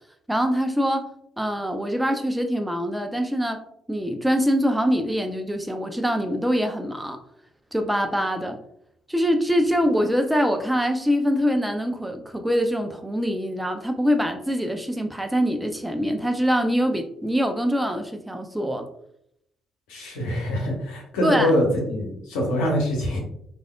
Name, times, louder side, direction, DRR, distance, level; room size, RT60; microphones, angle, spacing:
voice 1, 0.3-1.1 1.4-3.6 3.9-7.2 7.7-8.6 9.1-18.9 21.2-21.5, equal, 5° right, 5 dB, 0.5 m, -24 dB
voice 2, 19.9-23.2, left 1 dB, 75° left, -1 dB, 0.9 m, -24 dB
3.3 x 2.4 x 2.3 m, 0.73 s
hypercardioid pair, 45°, 0 cm